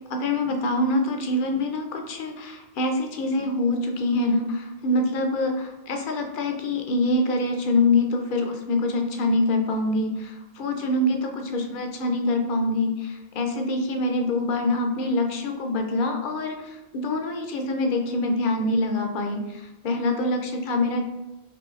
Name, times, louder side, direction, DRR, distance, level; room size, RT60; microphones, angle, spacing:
voice 1, 0.1-21.0, left 2 dB, 60° left, 3 dB, 0.7 m, -25 dB
4.8 x 2.7 x 2.4 m, 1.1 s
omnidirectional pair, 1.0 m